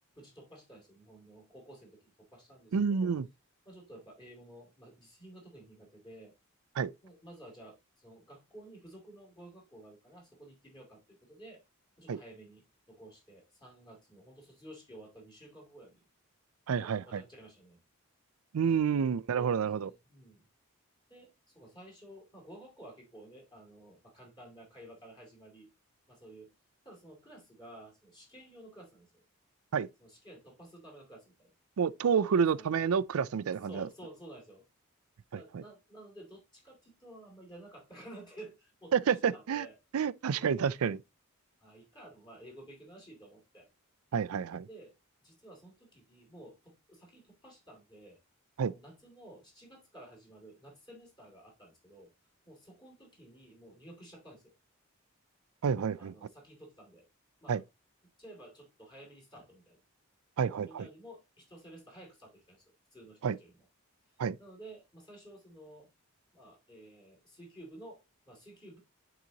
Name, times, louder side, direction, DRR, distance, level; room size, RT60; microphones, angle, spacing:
voice 1, 0.2-3.1 3.6-6.3 7.0-11.6 12.0-16.0 16.7-17.8 18.6-18.8 19.4-20.5 21.1-25.7 26.1-26.5 26.8-29.2 30.0-31.5 32.3-32.8 33.7-34.6 35.3-39.7 40.2-40.5 41.6-43.7 44.7-44.9 45.2-48.2 48.6-52.1 52.5-54.5 56.0-57.1 57.4-57.6 58.2-59.8 60.6-63.6 64.0-65.9 66.3-68.8, right 1 dB, 20° left, 2.4 m, -53 dB
voice 2, 2.7-3.3 6.8-6.9 12.1-12.2 16.7-17.2 18.5-19.9 29.7-29.9 31.8-33.9 35.3-35.6 38.9-39.7 39.9-41.0 44.1-44.7 48.6-48.7 55.6-56.1 57.5-57.6 60.4-60.9 63.2-63.4 64.2-64.4, right 6 dB, 80° right, 0.4 m, -29 dB
10.5 x 4.0 x 2.9 m
head